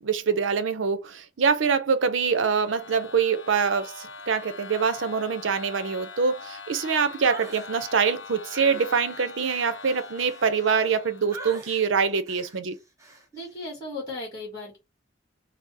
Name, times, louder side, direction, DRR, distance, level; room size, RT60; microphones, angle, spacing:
voice 1, 0.0-12.7, right 6 dB, 75° right, 0.6 m, -24 dB
sound 1, 2.0-11.6, left 5 dB, 75° left, 0.7 m, -43 dB
sound 2, 7.2-7.7 8.5-11.0 11.3-11.9 12.3-12.6 13.0-13.3, right 2 dB, 15° right, 0.7 m, -42 dB
voice 2, 13.3-14.8, left 2 dB, 20° left, 1.4 m, -36 dB
4.6 x 2.0 x 2.7 m
head